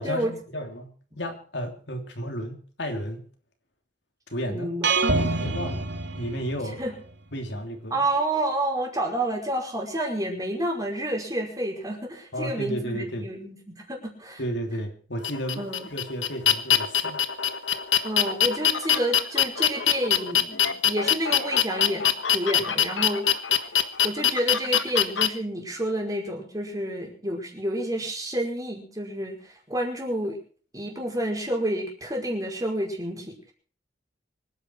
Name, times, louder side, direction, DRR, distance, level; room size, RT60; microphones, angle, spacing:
voice 1, 0.0-3.2 4.3-4.7 5.4-5.8 6.2-6.8 7.3-8.1 12.3-13.3 14.4-17.2, equal, 70° left, 4 dB, 3.3 m, -33 dB
voice 2, 4.5-4.9 6.8-6.9 7.9-14.4 15.6-15.9 18.0-20.6 20.8-23.3 23.7-30.4 30.7-33.5, right 1 dB, 20° right, 0 dB, 5.1 m, -29 dB
sound 1, 4.8-6.8, right 3 dB, 70° right, 3.1 m, -26 dB
sound 2, 15.2-25.3, left 9 dB, 90° left, 1.5 m, -23 dB
25.0 x 10.0 x 4.7 m, 0.43 s
head